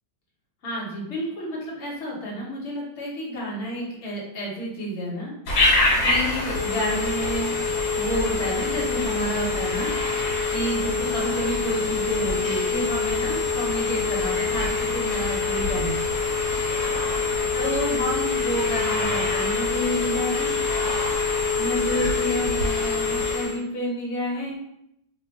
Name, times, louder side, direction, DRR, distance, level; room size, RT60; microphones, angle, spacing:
voice 1, 0.6-5.3 6.0-7.5 7.9-9.9 10.5-16.0 17.5-20.5 21.6-24.6, equal, 50° left, -3 dB, 1.0 m, -30 dB
Telephone, 5.5-23.6, left 4 dB, 65° left, 1.3 m, -25 dB
2.9 x 2.1 x 3.4 m, 0.77 s
omnidirectional pair, 1.9 m